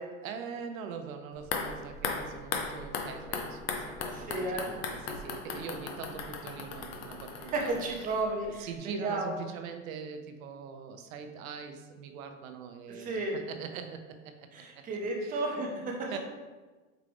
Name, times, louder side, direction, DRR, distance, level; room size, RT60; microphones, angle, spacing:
voice 1, 0.1-7.8 8.0-8.1 8.4-14.8 15.2-15.4 16.1-16.2, right 6 dB, 85° right, 7 dB, 0.6 m, -43 dB
sound 1, 1.4-8.5 8.7-8.8, left 5 dB, 50° left, 0.5 m, -37 dB
voice 2, 4.1-4.7 7.4-9.3 12.9-13.4 14.5-16.1, right 2 dB, 20° right, 0 dB, 0.5 m, -33 dB
4.7 x 2.5 x 3.3 m, 1.3 s
supercardioid pair, 140°, 40 cm